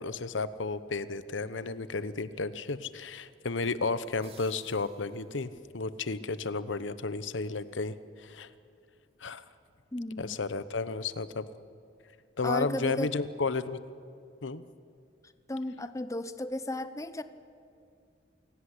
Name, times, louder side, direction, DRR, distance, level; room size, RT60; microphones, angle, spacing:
voice 1, 0.0-8.5 9.2-9.4 10.2-11.5 12.4-13.8 14.4-14.6, left 3 dB, 85° left, 14 dB, 1.0 m, -33 dB
sound 1, 4.0-5.6, right 6 dB, 30° right, 2.8 m, -58 dB
voice 2, 9.9-10.4 12.4-13.1 15.5-17.2, left 1 dB, 15° left, 12 dB, 0.8 m, -34 dB
28.0 x 17.5 x 10.0 m, 2.4 s
head